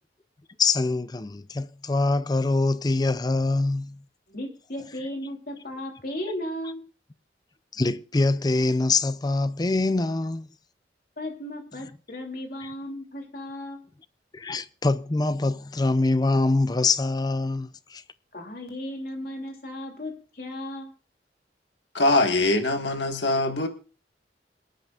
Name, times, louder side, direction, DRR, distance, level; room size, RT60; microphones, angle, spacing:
voice 1, 0.6-4.0 7.7-10.5 12.6-12.7 14.3-18.0, left 3 dB, 20° left, 0.5 m, -24 dB
voice 2, 4.3-6.8 11.2-13.8 18.3-20.9, left 1 dB, 55° left, 3.0 m, -35 dB
voice 3, 21.9-23.7, left 2 dB, 80° left, 1.7 m, -22 dB
27.0 x 9.1 x 2.5 m
head